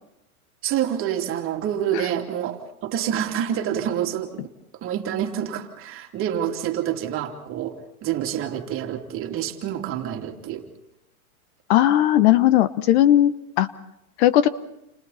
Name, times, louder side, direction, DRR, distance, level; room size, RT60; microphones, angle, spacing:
voice 1, 0.6-4.5 4.8-10.7, right 10 dB, 30° right, 3 dB, 3.0 m, -27 dB
voice 2, 11.7-13.7 14.2-14.5, left 12 dB, 50° left, 14 dB, 1.2 m, -17 dB
30.0 x 27.5 x 4.3 m, 0.85 s
hypercardioid pair, 130°, 43 cm